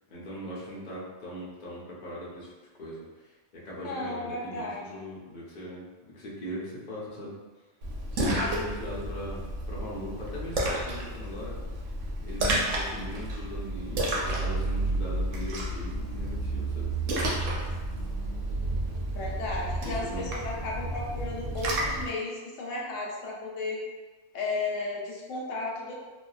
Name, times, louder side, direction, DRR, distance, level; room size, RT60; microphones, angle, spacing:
voice 1, 0.1-2.5 2.8-5.8 6.1-7.4 8.1-11.6 12.2-17.0 19.8-20.2, equal, 45° left, -6 dB, 0.7 m, -40 dB
voice 2, 3.8-5.0 8.4-8.5 19.1-23.8 24.3-26.0, left 2 dB, 90° left, -2 dB, 1.0 m, -34 dB
Splash splatter, 7.8-22.1, right 1 dB, 85° right, 1.0 m, -31 dB
2.7 x 2.3 x 2.3 m, 1.3 s
omnidirectional pair, 1.3 m